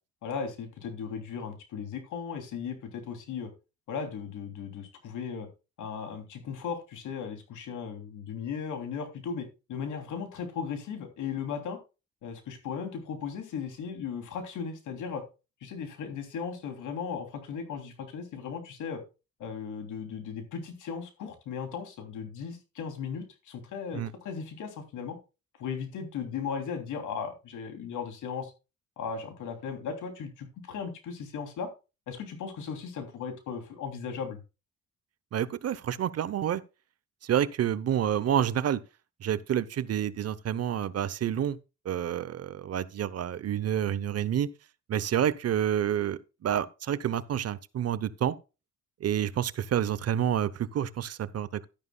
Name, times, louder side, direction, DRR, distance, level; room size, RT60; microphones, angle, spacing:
voice 1, 0.2-3.5 3.9-5.5 5.8-11.8 12.2-15.2 15.6-19.0 19.4-25.2 25.6-28.5 29.0-31.7 32.1-34.4, left 6 dB, 80° left, 3.1 m, -37 dB
voice 2, 35.3-36.6 37.2-38.8 39.2-41.6 41.8-44.5 44.9-48.4 49.0-51.7, right 10 dB, 55° right, 0.9 m, -28 dB
12.0 x 10.5 x 2.3 m
cardioid pair, 90°, 30 cm